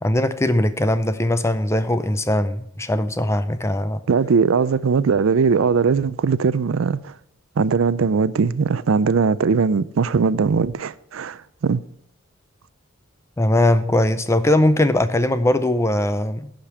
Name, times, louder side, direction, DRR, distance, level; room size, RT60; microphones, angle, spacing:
voice 1, 0.0-4.0 13.4-16.5, left 1 dB, 15° left, 0.5 m, -20 dB
voice 2, 4.1-7.1 7.6-11.8, right 5 dB, 75° right, 0.4 m, -20 dB
10.5 x 5.2 x 8.4 m
head